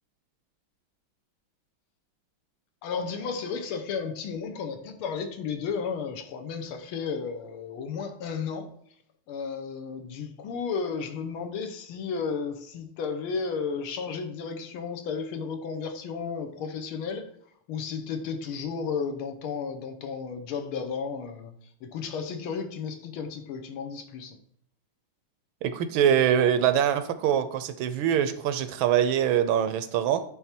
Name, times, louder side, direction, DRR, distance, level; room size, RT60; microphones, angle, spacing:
voice 1, 2.8-8.7 9.3-17.3 17.7-21.5 21.8-24.4, left 5 dB, 85° left, 6 dB, 1.7 m, -33 dB
voice 2, 25.6-30.2, right 9 dB, 80° right, 11 dB, 1.3 m, -24 dB
10.0 x 3.5 x 4.3 m, 0.66 s
omnidirectional pair, 2.3 m